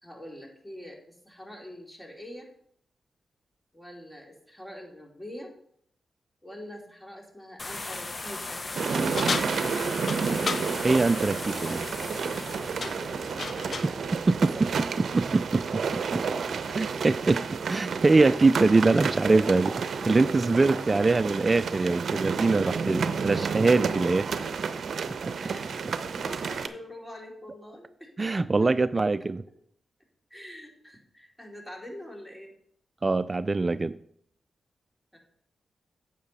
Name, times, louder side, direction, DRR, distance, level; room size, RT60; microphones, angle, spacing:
voice 1, 0.0-2.5 3.7-5.5 6.4-8.6 12.7-13.3 13.6-13.7 14.2-14.9 16.0-16.3 16.7-16.8 18.9-19.0 19.3-19.4 21.7-21.9 22.4-22.9 25.4-25.8 26.2-28.1 28.4-28.7 30.3-32.5 35.1-35.2, equal, 10° left, 0 dB, 2.7 m, -45 dB
sound 1, 7.6-15.7, left 2 dB, 40° left, 0.9 m, -39 dB
sound 2, 8.7-26.7, right 5 dB, 70° right, 0.6 m, -31 dB
sound 3, 9.2-10.7 12.2-12.5 12.8-14.0, left 5 dB, 60° left, 0.6 m, -33 dB
voice 2, 10.8-11.8 14.3-14.5 15.1-15.6 16.1-16.2 16.8-17.4 17.7-24.3 25.3-25.4 28.2-29.4 33.0-33.9, right 3 dB, 35° right, 14 dB, 0.3 m, -23 dB
9.5 x 6.9 x 4.1 m, 0.68 s
cardioid pair, 55°, 0 cm